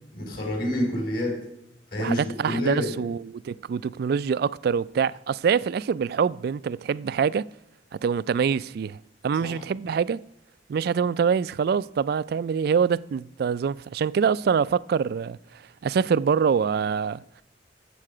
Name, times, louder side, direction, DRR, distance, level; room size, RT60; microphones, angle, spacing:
voice 1, 0.1-1.4 1.9-3.0 9.4-9.6, left 1 dB, 55° left, 4.2 m, -28 dB
voice 2, 2.0-7.5 7.9-9.0 9.2-10.2 10.7-15.4 15.8-17.2, right 6 dB, 60° right, 0.3 m, -25 dB
14.0 x 7.6 x 4.9 m
head